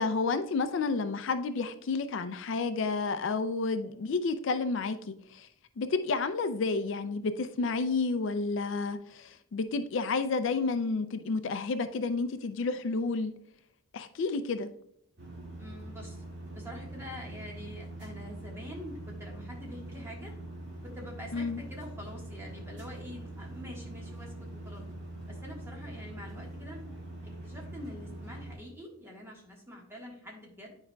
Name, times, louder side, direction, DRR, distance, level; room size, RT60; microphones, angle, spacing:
voice 1, 0.0-5.5 5.8-13.3 13.9-14.7 21.3-21.6, left 4 dB, 60° left, 10 dB, 0.4 m, -30 dB
sound 1, 15.2-28.5, right 1 dB, 55° right, 2.0 m, -43 dB
voice 2, 15.6-16.2 16.5-20.3 20.8-24.8 25.3-26.8 27.2-30.8, left 1 dB, 10° right, -2 dB, 1.5 m, -46 dB
9.6 x 4.8 x 2.3 m, 0.72 s
head